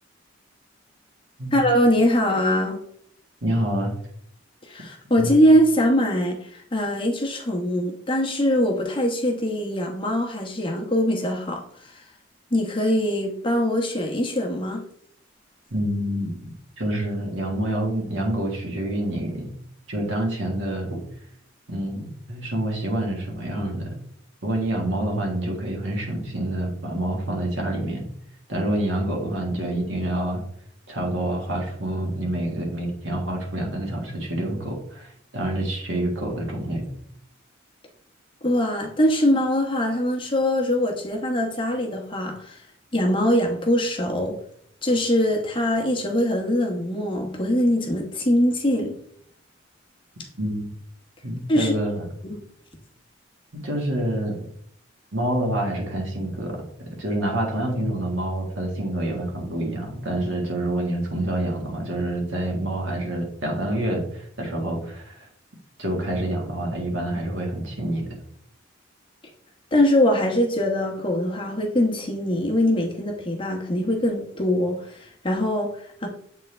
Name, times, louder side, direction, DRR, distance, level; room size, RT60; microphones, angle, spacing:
voice 1, 1.5-2.8 4.7-11.6 12.5-14.8 38.4-42.6 42.9-44.4 44.8-49.0 51.5-51.7 52.2-52.4 69.7-76.1, equal, 25° left, 0 dB, 1.1 m, -22 dB
voice 2, 3.4-3.9 5.2-5.4 15.7-16.3 16.8-19.5 19.9-21.0 21.7-23.9 24.4-28.1 28.5-30.4 30.9-36.9 50.4-50.7 51.2-52.1 53.5-54.4 55.1-65.3 65.8-68.0, right 1 dB, 85° right, 0 dB, 1.7 m, -27 dB
7.8 x 3.7 x 3.3 m, 0.66 s
head